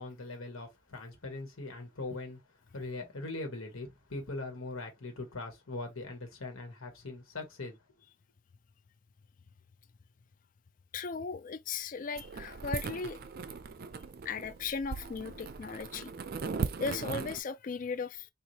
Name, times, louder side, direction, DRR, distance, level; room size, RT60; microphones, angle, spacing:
voice 1, 0.0-2.4 2.7-7.8, left 2 dB, 85° left, 1.4 m, -41 dB
voice 2, 10.9-13.2 14.2-16.1 16.8-18.3, left 5 dB, 40° left, 0.4 m, -37 dB
sound 1, 12.2-17.4, right 5 dB, 45° right, 0.4 m, -38 dB
3.2 x 2.5 x 4.0 m
head